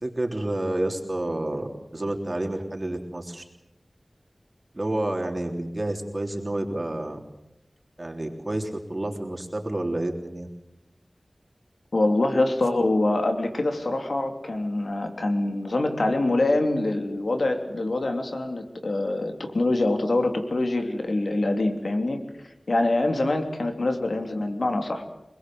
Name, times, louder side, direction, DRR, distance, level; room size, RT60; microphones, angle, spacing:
voice 1, 0.0-3.4 4.7-7.2 8.0-10.5, right 1 dB, 40° right, 2 dB, 3.6 m, -29 dB
voice 2, 11.9-25.0, left 2 dB, 85° left, 5 dB, 3.1 m, -25 dB
27.0 x 20.5 x 7.8 m, 0.86 s
wide cardioid pair, 50°, 0 cm